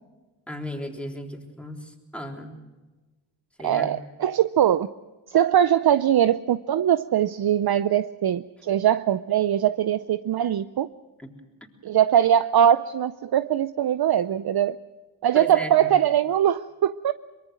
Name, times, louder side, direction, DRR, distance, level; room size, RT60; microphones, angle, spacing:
voice 1, 0.5-2.6 3.6-4.0 11.2-11.3 15.3-15.9, equal, 5° left, 0 dB, 3.7 m, -36 dB
voice 2, 3.6-4.9 5.3-10.9 11.8-14.7 15.2-17.1, right 10 dB, 60° right, 13 dB, 0.6 m, -21 dB
24.0 x 22.5 x 6.3 m, 1.2 s
cardioid pair, 80°, 44 cm